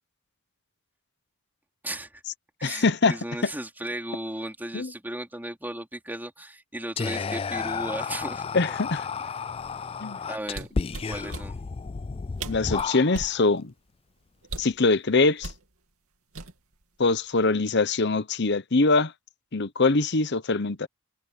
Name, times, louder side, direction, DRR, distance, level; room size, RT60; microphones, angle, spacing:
voice 1, 1.8-2.2 2.6-8.8 10.3-10.7 11.0-11.6, right 1 dB, 10° right, 3.4 m, -36 dB
voice 2, 2.6-3.2 4.7-4.9 8.5-9.1 10.0-10.2 12.5-13.7 14.6-15.5 17.0-19.1 19.5-20.9, left 3 dB, 50° left, 0.9 m, -23 dB
Whispering, 7.0-13.4, left 5 dB, 25° left, 0.3 m, -32 dB
sound 1, 10.5-11.5 12.1-12.2 12.4-13.4 14.4-14.8 15.4-15.6 16.3-16.8 17.2-17.4, right 3 dB, 80° right, 2.6 m, -37 dB
head